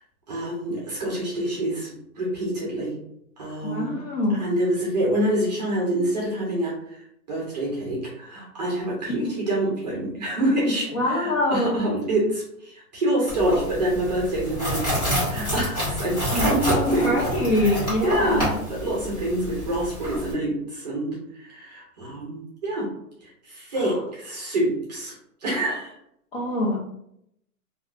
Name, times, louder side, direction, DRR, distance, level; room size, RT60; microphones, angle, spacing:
voice 1, 0.3-3.0 3.4-4.0 4.4-7.0 7.3-17.2 17.5-22.9 23.2-25.1 25.4-26.0, right 1 dB, 30° right, -3 dB, 0.6 m, -26 dB
voice 2, 3.6-4.4 9.2-9.3 10.9-11.8 16.3-18.5 23.8-23.9 26.3-26.8, left 1 dB, 40° left, -3 dB, 0.8 m, -24 dB
sound 1, 13.3-20.3, equal, 10° left, 0.9 m, -28 dB
3.1 x 2.4 x 2.3 m, 0.75 s
hypercardioid pair, 165°, 45 cm